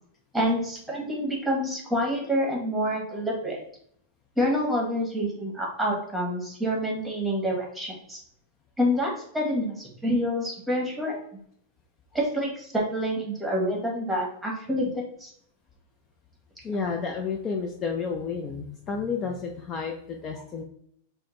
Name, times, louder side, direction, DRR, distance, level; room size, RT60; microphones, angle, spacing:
voice 1, 0.3-3.6 4.4-8.2 8.8-11.2 12.1-15.3, equal, 5° right, -2 dB, 1.2 m, -27 dB
voice 2, 16.6-20.6, left 5 dB, 30° left, 2 dB, 0.4 m, -31 dB
3.5 x 2.1 x 3.0 m, 0.67 s
hypercardioid pair, 100°, 0 cm